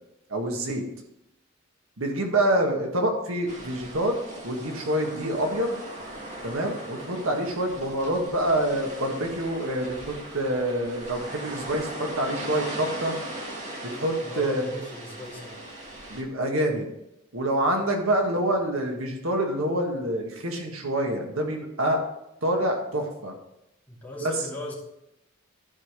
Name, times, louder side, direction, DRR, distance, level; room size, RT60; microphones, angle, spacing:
voice 1, 0.3-0.8 2.0-4.2 4.4-5.8 6.4-13.2 14.0-14.6 16.1-16.9 17.3-22.0 22.4-23.3 24.2-24.3, right 1 dB, 85° right, 2 dB, 1.7 m, -26 dB
sound 1, 3.5-16.2, right 1 dB, 35° right, 1.8 m, -39 dB
voice 2, 14.2-15.6 23.9-24.7, left 2 dB, 10° left, -6 dB, 2.6 m, -37 dB
12.0 x 4.9 x 5.1 m, 0.85 s
head